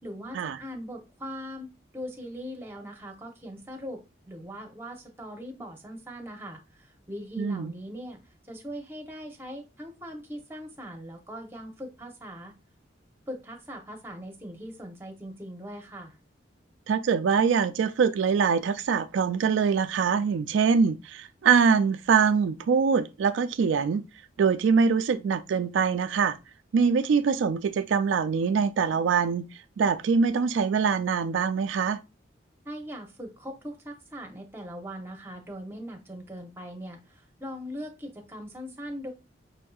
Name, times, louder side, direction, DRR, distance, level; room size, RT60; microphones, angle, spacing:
voice 1, 0.0-4.0 4.3-12.5 13.3-16.2 32.6-39.1, equal, 10° right, 0.7 m, -40 dB
voice 2, 7.4-7.7 16.9-24.0 24.4-26.4 26.7-29.5 29.8-32.0, right 6 dB, 85° right, 0.3 m, -24 dB
5.6 x 2.6 x 2.3 m
head